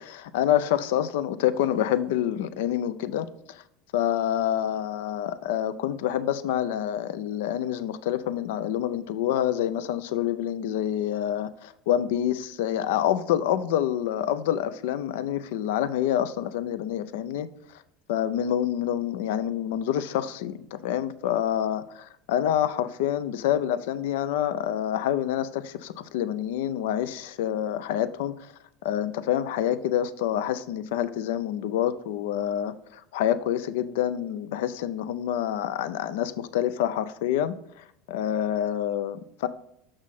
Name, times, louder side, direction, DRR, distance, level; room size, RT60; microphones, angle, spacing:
voice 1, 0.0-3.6 3.9-17.5 18.1-28.5 28.8-37.5 38.1-39.5, left 11 dB, 70° left, 14 dB, 0.4 m, -27 dB
6.2 x 6.1 x 4.1 m, 0.75 s
hypercardioid pair, 75°, 0 cm